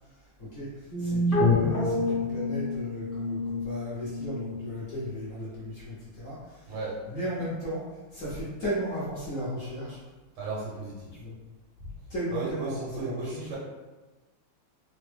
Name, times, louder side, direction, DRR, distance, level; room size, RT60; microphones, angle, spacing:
voice 1, 0.4-6.7 7.1-7.8 8.1-10.0 11.1-11.4 12.1-13.6, equal, 70° left, -8 dB, 0.7 m, -35 dB
sound 1, 0.9-5.3, left 2 dB, 25° left, 0.8 m, -28 dB
voice 2, 6.7-7.0 10.4-11.2 12.3-13.6, right 3 dB, 85° right, -6 dB, 1.8 m, -35 dB
3.7 x 2.1 x 3.2 m, 1.2 s
omnidirectional pair, 2.3 m